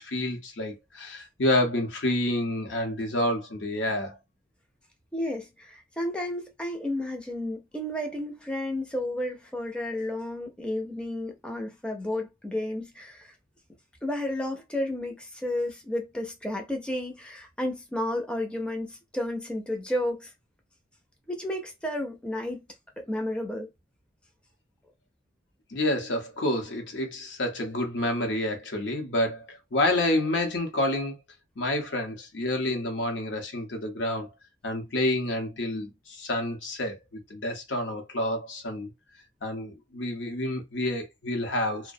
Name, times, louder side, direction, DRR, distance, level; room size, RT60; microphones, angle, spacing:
voice 1, 0.0-4.2 25.7-31.2 31.6-34.3 34.6-38.9 39.4-41.9, left 1 dB, 75° left, 0.7 m, -28 dB
voice 2, 5.1-13.3 14.0-20.3 21.3-22.6 23.0-23.7, left 1 dB, 5° left, 0.4 m, -32 dB
2.3 x 2.0 x 2.6 m
head